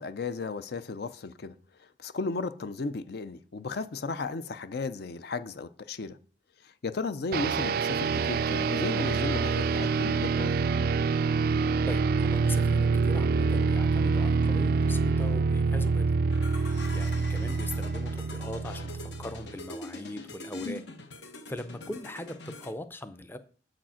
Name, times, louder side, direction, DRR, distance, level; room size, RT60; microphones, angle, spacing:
voice 1, 0.0-1.5 1.8-6.2 6.6-10.5, left 3 dB, 60° left, 0.5 m, -35 dB
sound 1, 7.3-19.5, right 4 dB, 55° right, 0.3 m, -26 dB
voice 2, 11.9-16.1 16.5-20.8 21.5-23.4, left 1 dB, 10° left, 0.5 m, -40 dB
sound 2, 16.3-22.7, left 3 dB, 75° left, 1.1 m, -43 dB
7.4 x 5.0 x 5.7 m
head